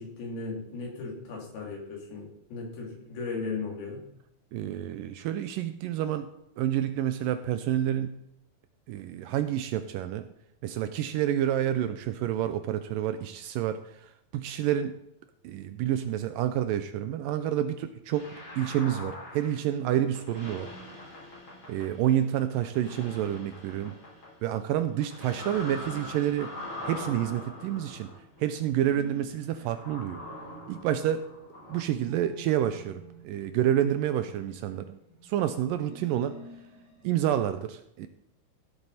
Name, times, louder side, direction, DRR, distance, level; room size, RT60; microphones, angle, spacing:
voice 1, 0.0-4.0, left 4 dB, 80° left, -1 dB, 4.7 m, -36 dB
voice 2, 4.5-6.3 6.6-8.1 8.9-10.3 10.6-15.0 15.4-20.7 21.7-23.9 24.4-26.5 26.9-28.1 28.4-30.2 30.7-31.3 31.7-35.0 35.2-36.4 37.0-38.1, right 11 dB, 80° right, 10 dB, 2.1 m, -29 dB
sound 1, 18.1-19.8 20.1-22.3 22.6-24.6 25.0-37.0, left 1 dB, 45° left, 6.4 m, -44 dB
16.0 x 8.1 x 4.1 m, 0.80 s
omnidirectional pair, 4.3 m